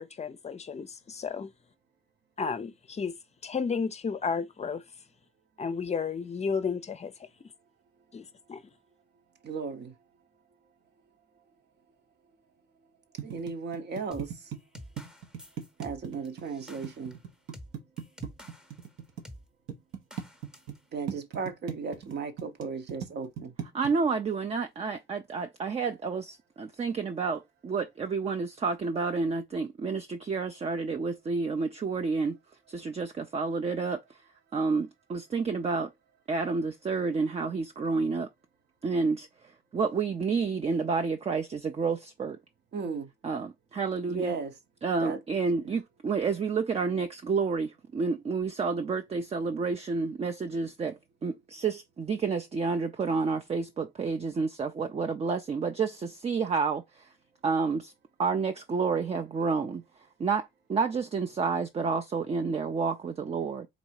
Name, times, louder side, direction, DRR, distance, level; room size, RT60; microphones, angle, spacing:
voice 1, 0.0-1.5 2.4-3.1 3.4-4.8 5.6-7.3 8.1-8.6, left 5 dB, 35° left, 0.5 m, -32 dB
voice 2, 9.4-9.9 13.2-14.3 15.8-17.2 20.9-23.5 42.7-43.1 44.1-44.5 45.0-45.2, right 5 dB, 55° right, 1.0 m, -35 dB
sound 1, 13.2-19.2 19.7-20.8 21.1-23.9, right 8 dB, 85° right, 1.1 m, -38 dB
sound 2, 14.1-18.9 19.2-19.5 20.1-20.8, left 1 dB, 5° right, 0.9 m, -49 dB
voice 3, 23.7-32.4 32.7-34.0 34.5-35.9 36.3-38.3 38.8-39.3 39.7-42.4 43.2-44.4 44.8-56.8 57.4-57.9 58.2-59.8 60.2-63.7, right 4 dB, 30° right, 0.5 m, -29 dB
4.0 x 2.7 x 4.6 m
cardioid pair, 90°, 20 cm